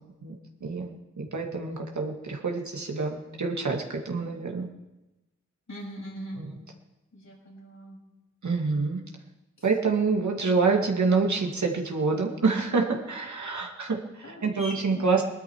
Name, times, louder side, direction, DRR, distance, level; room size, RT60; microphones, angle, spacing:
voice 1, 0.2-0.9 1.2-4.7 6.3-6.6 8.4-9.0 9.6-15.2, right 4 dB, 75° right, 1 dB, 2.3 m, -27 dB
voice 2, 5.7-6.4 7.1-8.0 14.2-15.1, equal, 65° left, -3 dB, 7.1 m, -40 dB
20.0 x 12.5 x 4.8 m, 1.0 s
cardioid pair, 55°, 30 cm